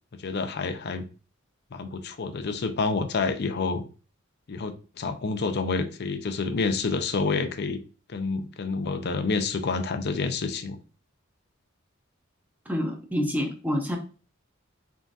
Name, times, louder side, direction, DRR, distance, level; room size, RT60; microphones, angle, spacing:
voice 1, 0.2-1.1 1.7-3.8 4.5-7.8 8.1-10.8, left 4 dB, 50° left, 0.5 m, -28 dB
voice 2, 12.7-14.0, equal, 10° right, 0.9 m, -27 dB
3.9 x 3.7 x 2.4 m
head